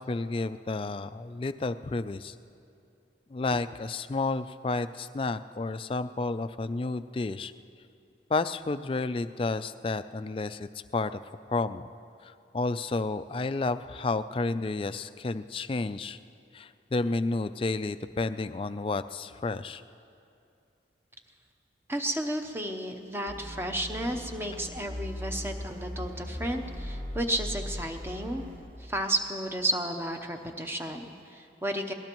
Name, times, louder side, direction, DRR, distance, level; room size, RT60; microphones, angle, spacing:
voice 1, 0.0-2.4 3.3-7.5 8.3-11.2 11.5-11.8 12.2-16.2 16.5-19.8, left 3 dB, 30° left, 12 dB, 0.3 m, -31 dB
voice 2, 21.9-28.4 28.8-31.9, right 1 dB, 15° right, 5 dB, 0.7 m, -32 dB
sound 1, 23.3-28.6, left 1 dB, 60° right, 3.3 m, -38 dB
23.0 x 18.5 x 3.0 m, 2.5 s
head